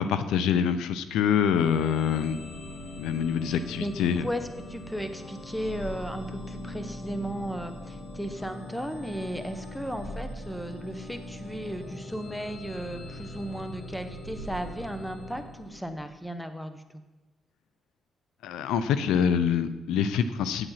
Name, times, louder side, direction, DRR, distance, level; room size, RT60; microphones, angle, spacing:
voice 1, 0.0-2.4 3.0-4.3 18.4-20.7, left 7 dB, 90° left, 12 dB, 0.6 m, -25 dB
sound 1, 1.5-16.2, left 1 dB, 60° left, 2.4 m, -41 dB
voice 2, 3.4-16.8, equal, 5° left, 9 dB, 1.1 m, -35 dB
8.6 x 8.0 x 5.7 m, 1.1 s
cardioid pair, 80°, 0 cm